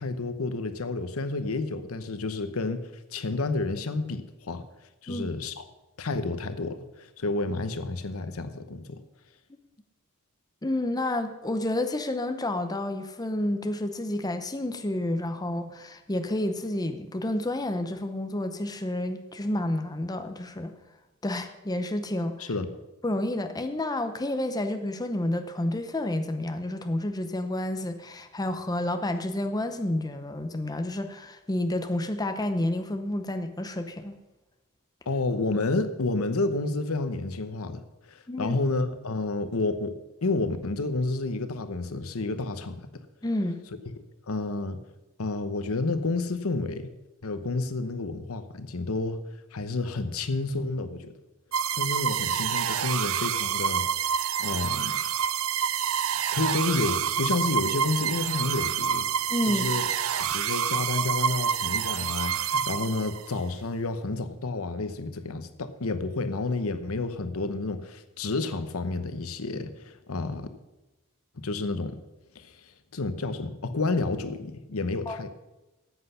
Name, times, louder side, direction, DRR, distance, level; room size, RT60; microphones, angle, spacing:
voice 1, 0.0-4.6 5.0-5.6 6.0-9.0 22.5-22.7 35.1-37.8 38.1-43.0 43.9-44.0 44.3-44.8 45.2-46.9 47.2-49.2 49.5-51.1 51.8-53.8 54.4-55.0 56.3-59.1 59.5-59.9 60.2-70.5 71.4-72.0 72.3-75.3, left 3 dB, 80° left, 11 dB, 0.9 m, -30 dB
voice 2, 10.6-20.7 21.2-22.5 23.0-34.2 38.3-38.6 43.2-43.6 59.3-59.7 75.1-75.2, left 1 dB, 20° left, 7 dB, 0.7 m, -30 dB
sound 1, 51.5-63.4, right 8 dB, 70° right, 0.5 m, -28 dB
13.5 x 8.0 x 5.6 m, 1.0 s
head